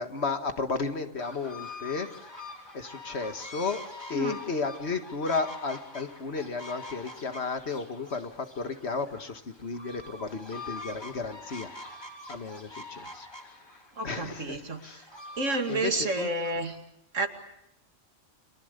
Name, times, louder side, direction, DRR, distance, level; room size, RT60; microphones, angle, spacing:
voice 1, 0.0-2.4 2.7-3.8 4.1-11.7 12.3-13.6 14.0-15.1 15.7-16.3, left 4 dB, 55° left, 7 dB, 1.9 m, -33 dB
sound 1, 1.2-16.8, left 2 dB, 20° left, 3.2 m, -45 dB
voice 2, 14.0-14.9 15.4-16.8 17.1-17.3, right 2 dB, 80° right, 5 dB, 2.6 m, -30 dB
30.0 x 24.5 x 6.7 m, 0.77 s
omnidirectional pair, 1.3 m